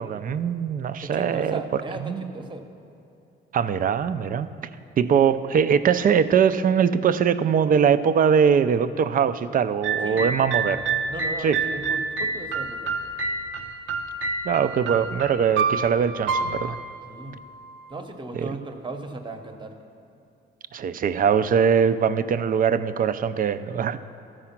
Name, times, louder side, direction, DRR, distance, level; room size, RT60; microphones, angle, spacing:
voice 1, 0.0-1.6 2.0-2.3 3.5-4.5 5.0-10.8 11.4-11.6 14.4-16.8 18.4-18.5 20.7-24.0, right 7 dB, 45° right, 12 dB, 0.4 m, -22 dB
voice 2, 1.0-2.7 10.0-10.3 11.1-12.9 17.1-17.4 17.9-19.8, right 2 dB, 25° right, 6 dB, 0.9 m, -36 dB
sound 1, 9.8-17.8, right 4 dB, 80° right, 0.7 m, -28 dB
13.5 x 4.9 x 5.8 m, 2.8 s
cardioid pair, 90°, 20 cm